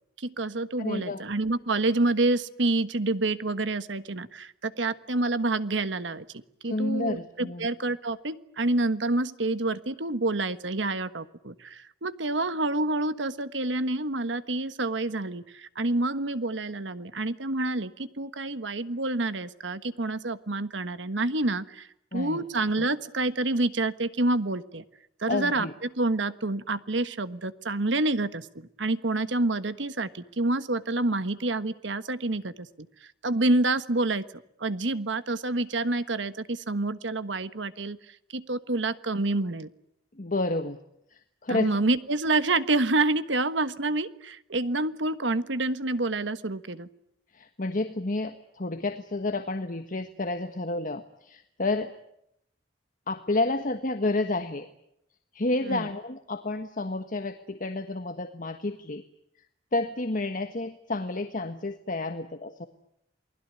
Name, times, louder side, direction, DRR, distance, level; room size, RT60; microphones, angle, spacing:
voice 1, 0.2-24.8 25.2-25.7 26.0-32.7 33.2-34.3 34.6-38.0 38.3-39.7 41.5-46.9 55.7-55.9, right 2 dB, 80° right, 13 dB, 1.4 m, -28 dB
voice 2, 0.8-1.2 6.6-7.7 22.1-22.4 22.8-22.9 25.3-25.7 40.1-40.8 41.1-41.8 47.3-51.9 53.1-54.7 55.3-59.0 59.7-62.7, left 2 dB, 50° left, 8 dB, 1.5 m, -30 dB
28.5 x 20.5 x 9.6 m, 0.79 s
head